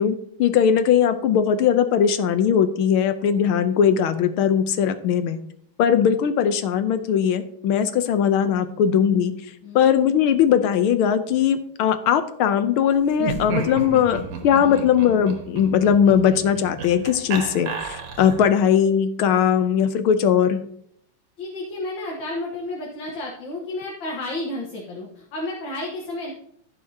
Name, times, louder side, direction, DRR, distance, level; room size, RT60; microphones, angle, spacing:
voice 1, 0.0-5.4 5.8-9.3 9.7-20.6, left 8 dB, 80° left, 11 dB, 1.6 m, -19 dB
voice 2, 9.6-9.9 14.5-14.8 21.4-26.3, left 2 dB, 65° left, -2 dB, 2.1 m, -32 dB
Laughter, 13.1-18.6, right 4 dB, 90° right, 2.2 m, -32 dB
15.5 x 6.1 x 2.8 m, 0.68 s
omnidirectional pair, 2.4 m